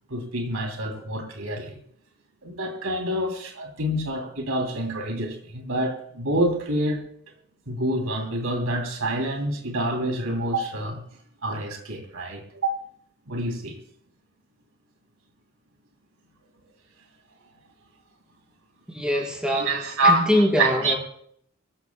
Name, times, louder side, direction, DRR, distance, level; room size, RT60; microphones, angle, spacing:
voice 1, 0.1-1.8 2.4-7.0 7.7-11.0 11.4-12.9 13.3-13.8 19.5-21.0, right 1 dB, 80° right, 2.9 m, -27 dB
voice 2, 18.9-19.7 20.0-21.0, equal, 5° right, 5.0 m, -23 dB
23.5 x 14.5 x 2.2 m
head